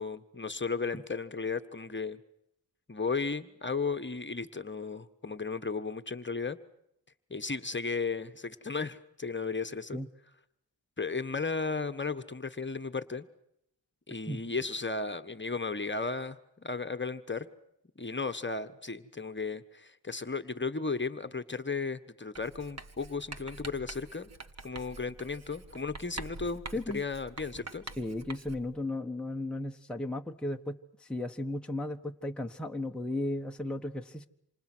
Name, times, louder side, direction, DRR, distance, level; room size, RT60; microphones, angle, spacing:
voice 1, 0.0-2.2 2.9-6.6 7.3-10.0 11.0-13.3 14.1-17.5 18.0-24.3 24.6-27.8, left 4 dB, 25° left, 10 dB, 1.4 m, -35 dB
Writing, 22.4-28.8, right 3 dB, 35° right, 1.6 m, -46 dB
voice 2, 26.7-27.0 28.0-34.3, left 1 dB, ahead, 3 dB, 1.3 m, -35 dB
28.5 x 27.0 x 6.3 m, 0.78 s
cardioid pair, 80°, 42 cm